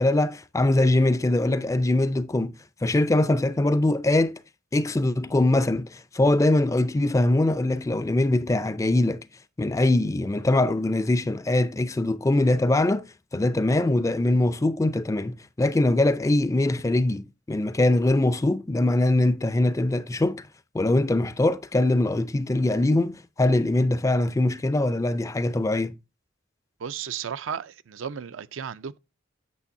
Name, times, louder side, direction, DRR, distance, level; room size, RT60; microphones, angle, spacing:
voice 1, 0.0-2.5 2.8-4.4 4.7-9.2 9.6-20.5 20.7-25.9, left 2 dB, 15° left, 0.4 m, -22 dB
voice 2, 26.8-29.0, right 7 dB, 65° right, 0.4 m, -34 dB
8.4 x 6.9 x 2.6 m
head